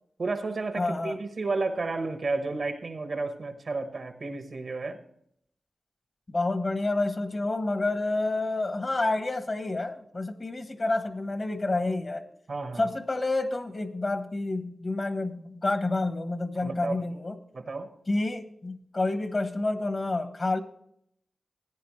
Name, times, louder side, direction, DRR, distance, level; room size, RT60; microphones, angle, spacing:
voice 1, 0.2-5.0 12.5-12.9 16.6-17.0 17.5-17.9, right 3 dB, 70° right, 8 dB, 1.2 m, -32 dB
voice 2, 0.8-1.2 6.3-12.2 12.8-17.4 18.1-20.6, left 2 dB, 45° left, 10 dB, 1.0 m, -29 dB
15.5 x 9.2 x 3.1 m, 0.72 s
cardioid pair, 55°, 0 cm